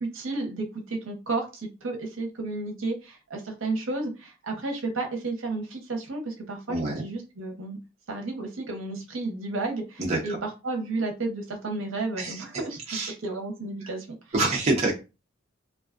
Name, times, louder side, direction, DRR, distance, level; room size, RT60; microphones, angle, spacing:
voice 1, 0.0-7.8 8.1-14.1, right 3 dB, 70° right, 4 dB, 0.7 m, -32 dB
voice 2, 6.7-7.0 10.0-10.4 12.2-12.4 12.9-13.1 14.3-15.0, right 2 dB, 30° right, -2 dB, 0.5 m, -26 dB
2.4 x 2.3 x 2.4 m, 0.29 s
head